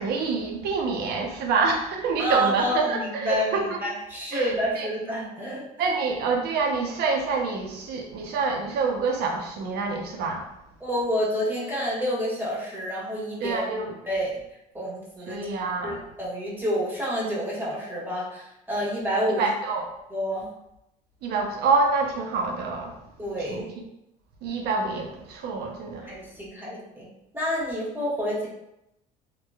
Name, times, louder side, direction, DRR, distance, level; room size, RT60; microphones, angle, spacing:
voice 1, 0.0-3.8 4.3-4.9 5.8-10.5 13.4-13.8 15.3-16.0 19.4-19.9 21.2-22.9 23.5-23.6 24.4-26.1, right 4 dB, 60° right, 2 dB, 0.6 m, -27 dB
voice 2, 2.2-5.6 10.8-13.7 14.1-14.4 14.7-15.4 15.8-19.5 20.1-20.5 23.2-23.7 26.0-27.1 27.3-28.5, equal, 10° right, -6 dB, 1.1 m, -28 dB
2.8 x 2.2 x 2.2 m, 0.85 s
supercardioid pair, 75°, 18 cm